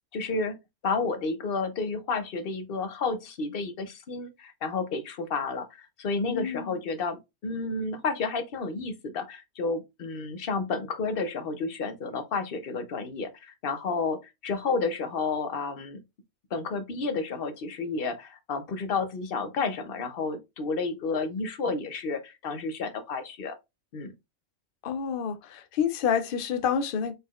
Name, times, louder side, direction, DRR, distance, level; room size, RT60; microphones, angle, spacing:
voice 1, 0.1-0.6 0.8-16.0 16.5-23.6 23.9-24.1, left 4 dB, 50° left, 0.8 m, -31 dB
voice 2, 6.3-6.8 24.8-27.1, left 7 dB, 75° left, 0.4 m, -28 dB
4.0 x 4.0 x 2.3 m
omnidirectional pair, 1.5 m